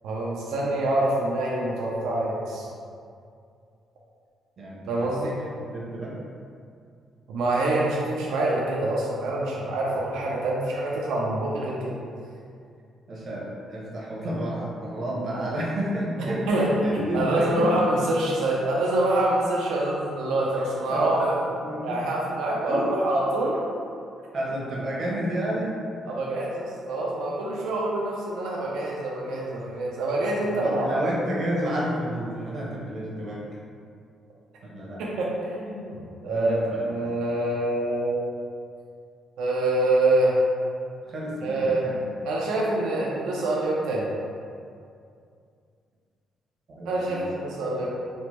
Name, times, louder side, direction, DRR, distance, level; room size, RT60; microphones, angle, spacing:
voice 1, 0.0-2.7 4.9-5.3 7.3-12.0 16.5-21.4 21.8-23.6 26.1-31.0 35.0-38.2 39.4-40.4 41.4-41.9 42.2-44.1 46.9-47.9, right 1 dB, 85° right, -4 dB, 0.4 m, -26 dB
voice 2, 4.6-5.1 5.7-6.2 13.1-18.0 19.7-19.8 20.9-22.0 22.7-22.8 24.3-25.8 30.4-33.5 34.6-35.0 36.3-37.0 41.0-42.1 46.7-47.2, right 1 dB, 55° right, -4 dB, 0.7 m, -31 dB
3.1 x 2.1 x 2.9 m, 2.4 s
cardioid pair, 90°, 0 cm